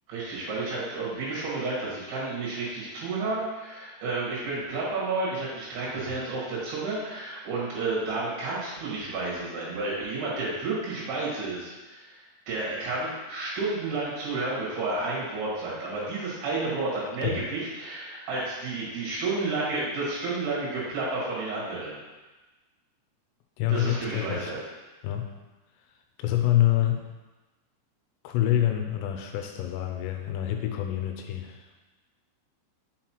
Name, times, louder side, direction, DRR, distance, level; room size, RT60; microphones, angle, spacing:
voice 1, 0.1-22.0 23.7-24.6, right 3 dB, 70° right, -6 dB, 3.7 m, -31 dB
voice 2, 23.6-24.5 25.0-25.3 26.2-27.0 28.2-31.7, left 12 dB, 85° left, 4 dB, 2.8 m, -26 dB
6.5 x 5.6 x 3.0 m, 1.2 s
omnidirectional pair, 5.0 m